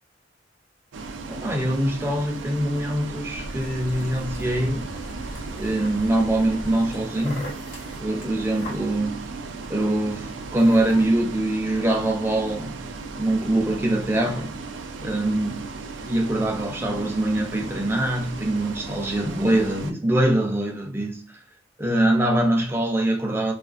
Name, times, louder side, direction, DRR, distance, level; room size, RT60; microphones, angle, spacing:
Bus, 0.9-19.9, right 4 dB, 80° right, 0.3 m, -36 dB
voice 1, 1.3-4.9 5.5-7.5 8.0-9.2 9.5-12.8 13.2-14.6 15.0-15.7 16.0-21.2 21.8-23.5, right 1 dB, 15° right, 0.5 m, -23 dB
sound 1, 3.3-11.0, left 1 dB, 55° left, 1.1 m, -40 dB
2.4 x 2.4 x 2.4 m
head